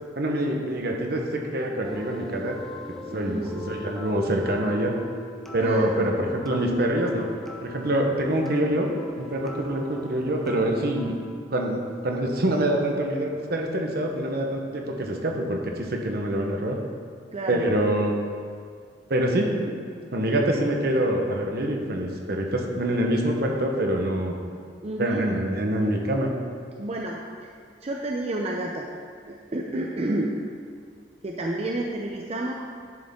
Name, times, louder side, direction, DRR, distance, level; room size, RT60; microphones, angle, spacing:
voice 1, 0.2-2.6 2.9-4.9 5.5-7.3 7.6-8.9 9.2-11.2 11.5-16.8 17.5-18.2 19.1-19.8 20.1-24.4 25.0-26.3, right 1 dB, 60° right, 1 dB, 1.0 m, -25 dB
sound 1, 1.8-11.3, left 1 dB, ahead, 0.7 m, -41 dB
voice 2, 3.1-3.7 5.6-6.1 17.3-17.6 24.8-25.3 26.8-27.2 27.8-28.9 29.3-30.3 31.2-32.5, right 1 dB, 35° right, 0 dB, 0.6 m, -30 dB
10.5 x 6.3 x 3.7 m, 2.1 s
head